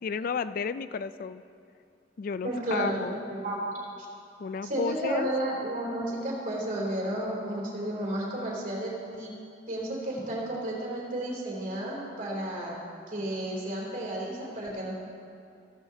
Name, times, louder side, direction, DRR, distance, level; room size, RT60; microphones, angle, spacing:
voice 1, 0.0-1.4 2.2-3.2 4.4-5.3, left 5 dB, 50° left, 14 dB, 0.3 m, -32 dB
voice 2, 2.4-3.7 4.6-9.3 9.7-12.8 13.1-14.9, right 1 dB, 50° right, -4 dB, 3.2 m, -32 dB
16.0 x 13.5 x 2.8 m, 2.5 s
head